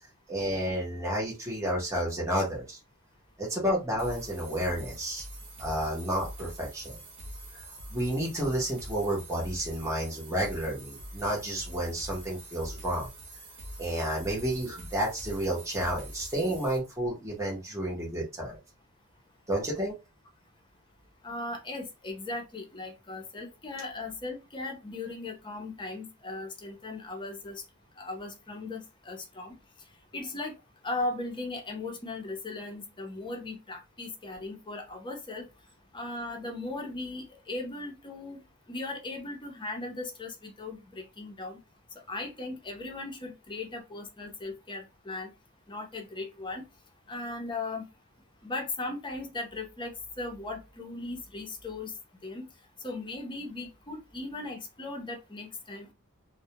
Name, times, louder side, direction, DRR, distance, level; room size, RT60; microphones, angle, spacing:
voice 1, 0.3-2.8 3.4-5.2 5.6-7.0 7.5-13.1 13.8-18.6 19.5-19.9, right 1 dB, 15° right, -4 dB, 0.8 m, -31 dB
sound 1, 4.0-16.8, right 1 dB, 50° right, 1.0 m, -44 dB
voice 2, 21.2-27.6 28.0-29.5 30.1-30.5 30.8-35.5 35.9-38.4 38.7-41.6 42.1-45.3 45.7-46.7 47.1-47.8 48.4-49.9 50.2-51.9 52.2-52.5 52.8-55.9, left 2 dB, 20° left, 3 dB, 0.6 m, -38 dB
2.2 x 2.1 x 2.8 m, 0.25 s
head